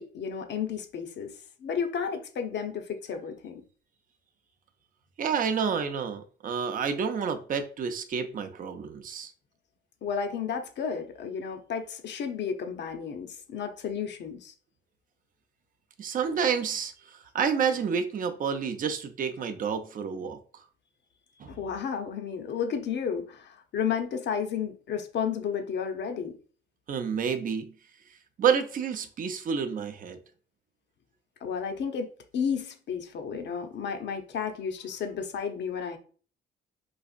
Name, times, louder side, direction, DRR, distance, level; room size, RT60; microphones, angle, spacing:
voice 1, 0.0-1.3 1.6-3.6 10.0-14.5 21.4-26.4 31.4-36.0, left 7 dB, 60° left, 0.7 m, -32 dB
voice 2, 5.2-9.3 16.0-20.4 21.4-21.6 26.9-27.7 28.4-30.2, right 6 dB, 45° right, 0.5 m, -29 dB
4.0 x 2.5 x 2.4 m
cardioid pair, 90°, 20 cm